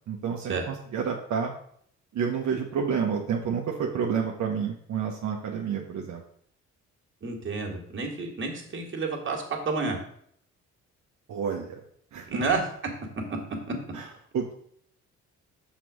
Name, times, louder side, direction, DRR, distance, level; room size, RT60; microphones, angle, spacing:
voice 1, 0.1-1.5 2.1-6.2 11.3-11.8 12.1-12.5 13.9-14.0 14.3-14.5, right 6 dB, 65° right, -1 dB, 1.1 m, -29 dB
voice 2, 7.2-10.0 12.3-12.6, right 4 dB, 40° right, 1 dB, 2.0 m, -30 dB
6.0 x 4.2 x 6.2 m, 0.65 s
cardioid pair, 90°, 30 cm